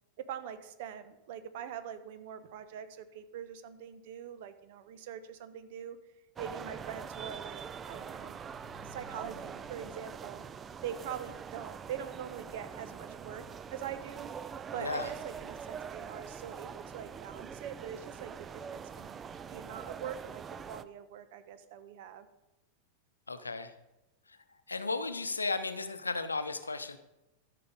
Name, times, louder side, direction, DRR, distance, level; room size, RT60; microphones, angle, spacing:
voice 1, 0.2-6.0 6.4-8.4 8.8-10.4 10.8-13.4 13.7-14.3 14.7-19.2 19.5-22.3, right 9 dB, 50° right, 12 dB, 0.9 m, -43 dB
sound 1, 6.4-20.8, right 7 dB, 20° right, 0.4 m, -44 dB
sound 2, 8.4-11.6, left 7 dB, 25° left, 1.1 m, -59 dB
voice 2, 14.8-15.1 23.3-23.7 24.3-24.4 24.7-27.0, left 3 dB, 80° left, 11 dB, 0.8 m, -35 dB
13.0 x 5.8 x 5.1 m, 0.95 s
figure-of-eight pair, 90°, 0 cm